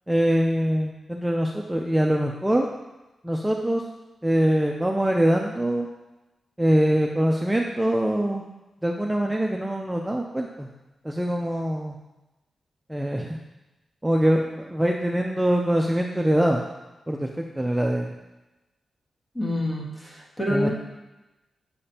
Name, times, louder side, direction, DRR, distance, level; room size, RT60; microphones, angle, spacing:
voice 1, 0.1-2.7 3.2-3.8 4.2-5.9 6.6-8.4 8.8-10.7 11.0-12.0 12.9-13.4 14.0-16.6 17.1-18.1 20.5-20.7, right 1 dB, 10° right, 0 dB, 0.4 m, -23 dB
voice 2, 19.4-20.7, left 1 dB, 25° left, -3 dB, 1.6 m, -27 dB
7.7 x 5.0 x 2.9 m, 1.0 s
cardioid pair, 95°, 0 cm